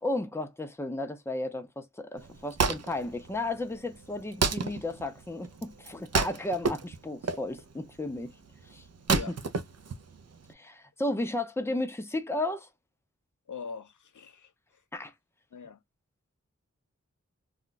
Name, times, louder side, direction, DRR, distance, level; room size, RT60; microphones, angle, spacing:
voice 1, 0.0-8.3 8.7-8.8 9.1-9.2 10.5-12.7 14.9-15.1, left 2 dB, 10° left, 0.5 m, -33 dB
Wood, 2.2-10.5, right 5 dB, 55° right, 0.5 m, -32 dB
voice 2, 13.5-14.8 15.5-15.8, left 5 dB, 80° left, 0.5 m, -42 dB
2.3 x 2.1 x 3.9 m
wide cardioid pair, 50°, 30 cm